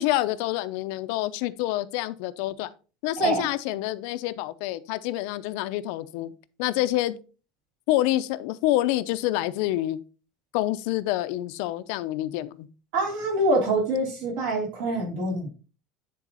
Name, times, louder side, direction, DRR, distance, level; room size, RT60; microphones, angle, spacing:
voice 1, 0.0-2.7 3.0-6.3 6.6-7.2 7.9-10.0 10.5-12.7, left 15 dB, 65° left, 0.5 m, -27 dB
voice 2, 3.2-3.5 12.9-15.5, right 2 dB, 65° right, 3.7 m, -25 dB
10.0 x 3.9 x 4.1 m
cardioid pair, 170°, 0 cm